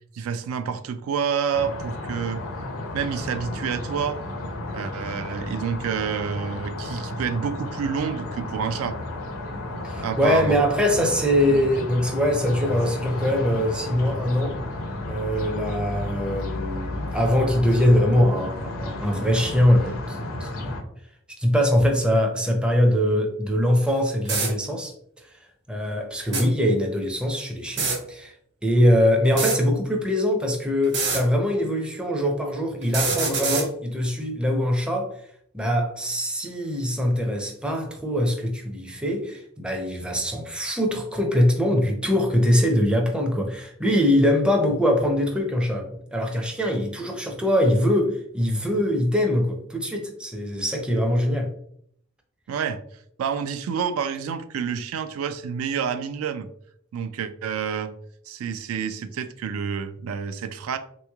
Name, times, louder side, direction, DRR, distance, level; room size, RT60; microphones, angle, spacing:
voice 1, 0.1-2.4 2.9-4.2 4.7-9.0 10.0-10.6 11.5-11.6 52.5-52.8 53.2-56.5 56.9-57.9 58.3-60.8, right 7 dB, 80° right, 9 dB, 0.3 m, -28 dB
sound 1, 1.5-20.8, left 2 dB, 75° left, 0.6 m, -33 dB
voice 2, 9.8-14.6 15.1-20.8 21.4-24.9 25.2-25.3 25.7-28.3 28.6-35.1 35.5-51.5, equal, 5° right, 2 dB, 0.5 m, -22 dB
sound 2, 23.9-24.0 24.2-24.5 26.2-26.4 27.7-28.0 29.2-29.6 30.8-31.2 32.8-33.7, right 4 dB, 60° right, 1.1 m, -24 dB
3.4 x 3.0 x 2.2 m, 0.66 s
head